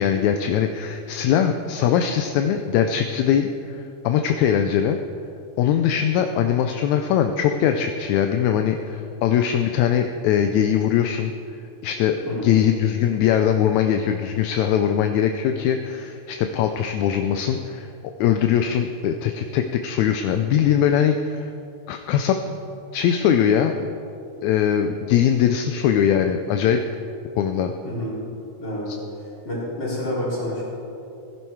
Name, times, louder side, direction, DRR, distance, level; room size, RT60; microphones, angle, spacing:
voice 1, 0.0-5.0 5.6-11.3 11.8-17.9 18.2-21.5 21.9-22.4 22.9-23.9 24.4-26.8 27.4-27.7 28.9-29.0, left 9 dB, 80° left, 6 dB, 1.8 m, -21 dB
voice 2, 29.4-30.6, left 1 dB, 35° left, -7 dB, 4.3 m, -28 dB
17.0 x 11.0 x 4.6 m, 2.7 s
omnidirectional pair, 3.7 m